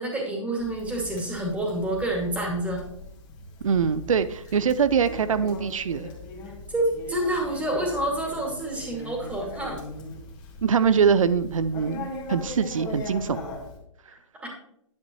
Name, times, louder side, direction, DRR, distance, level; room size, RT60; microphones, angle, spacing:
voice 1, 0.0-2.8 6.7-9.8 14.1-14.5, right 1 dB, 10° right, -1 dB, 2.5 m, -28 dB
Conversation, 0.6-13.8, left 2 dB, 25° left, 2.1 m, -40 dB
voice 2, 3.6-6.1 10.6-13.5, right 6 dB, 85° right, 13 dB, 0.5 m, -23 dB
10.5 x 7.6 x 3.1 m, 0.72 s
hypercardioid pair, 140°, 17 cm